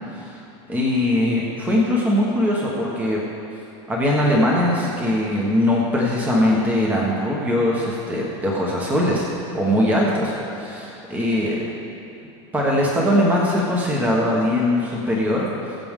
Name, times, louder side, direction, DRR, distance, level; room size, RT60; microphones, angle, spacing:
voice 1, 0.7-3.2 3.9-9.3 9.5-11.6 12.5-15.5, left 1 dB, 10° right, -3 dB, 1.2 m, -21 dB
21.0 x 7.0 x 3.7 m, 2.8 s
supercardioid pair, 155°, 15 cm